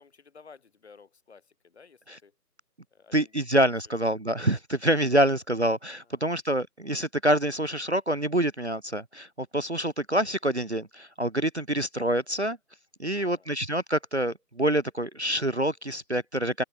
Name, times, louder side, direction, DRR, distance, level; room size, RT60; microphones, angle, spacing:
voice 1, 0.0-2.4 2.9-3.5 6.0-6.4 13.0-13.5, left 5 dB, 40° left, 3.5 m, -54 dB
voice 2, 3.1-12.6 13.0-16.6, right 1 dB, 45° right, 0.5 m, -26 dB
open air
figure-of-eight pair, 165°, 48 cm